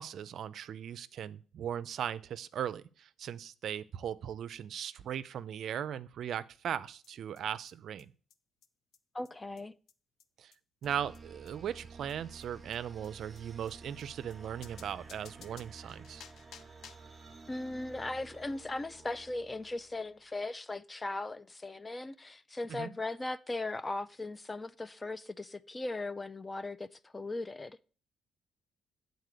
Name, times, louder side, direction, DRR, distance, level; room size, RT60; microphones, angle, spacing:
voice 1, 0.0-8.1 10.4-10.5 10.8-16.2 22.7-22.9, right 9 dB, 65° right, 0.4 m, -38 dB
sound 1, 7.0-7.1 7.3-7.4 7.7-7.8 8.0-8.1 8.3-8.4 8.6-8.7 8.9-9.0 9.2-9.3 9.6-9.7 9.9-10.0 10.2-10.3 10.5-10.6 10.8-10.9 11.1-11.2 11.5-11.6 11.8-11.9 12.1-12.2 12.4-12.5 12.7-12.8 13.0-13.1 13.3-13.4 13.7-13.8 14.0-14.1 14.3-14.4 14.6-17.1, left 7 dB, 70° left, 0.6 m, -55 dB
voice 2, 9.1-9.7 17.5-27.8, left 2 dB, 20° left, 0.4 m, -38 dB
sound 2, 10.8-20.3, right 4 dB, 25° right, 0.9 m, -52 dB
8.2 x 4.0 x 6.7 m
cardioid pair, 90°, 0 cm